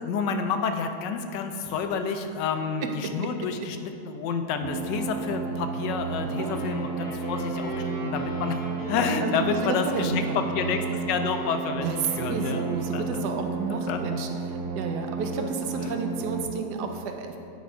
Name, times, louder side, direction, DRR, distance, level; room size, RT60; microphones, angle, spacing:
voice 1, 0.0-11.9 12.2-12.6 12.9-13.2 13.7-14.2 15.4-15.5 15.8-15.9, left 5 dB, 85° left, 7 dB, 1.3 m, -29 dB
voice 2, 2.8-3.3 6.2-6.5 9.2-10.4 11.8-17.4, right 5 dB, 75° right, 5 dB, 1.2 m, -31 dB
sound 1, 4.6-16.5, right 4 dB, 60° right, 1.1 m, -32 dB
sound 2, 6.3-13.2, equal, 20° left, 0.7 m, -39 dB
9.3 x 4.1 x 4.8 m, 2.7 s
omnidirectional pair, 1.9 m